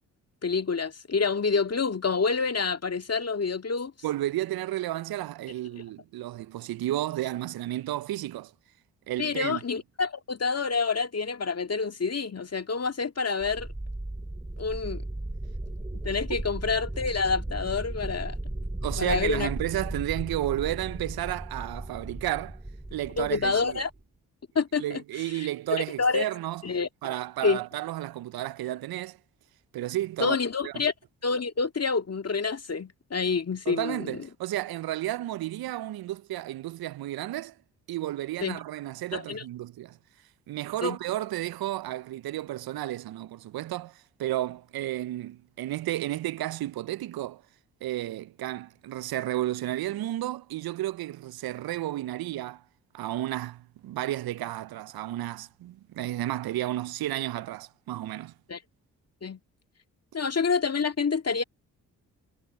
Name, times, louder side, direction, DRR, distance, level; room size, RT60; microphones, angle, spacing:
voice 1, 0.4-3.9 9.2-13.7 14.6-15.0 16.0-18.4 18.9-19.5 23.2-23.9 24.6-25.0 25.4-25.5 26.0-26.3 26.6-26.9 27.4-27.6 30.2-30.9 31.2-34.2 38.4-38.6 39.1-39.4 40.8-41.0 58.5-58.6 59.2-59.4 60.1-61.4, left 5 dB, 35° left, 2.1 m, -27 dB
voice 2, 4.0-8.5 9.1-9.6 16.3-16.4 18.8-22.6 22.9-23.8 24.8-26.6 27.0-29.2 29.7-30.4 30.6-30.7 33.7-37.6 37.9-40.0 40.5-47.4 47.8-52.6 52.9-58.3, right 14 dB, 60° right, 0.8 m, -32 dB
sound 1, 13.4-24.0, right 1 dB, 15° right, 7.1 m, -36 dB
hypercardioid pair, 40°, 41 cm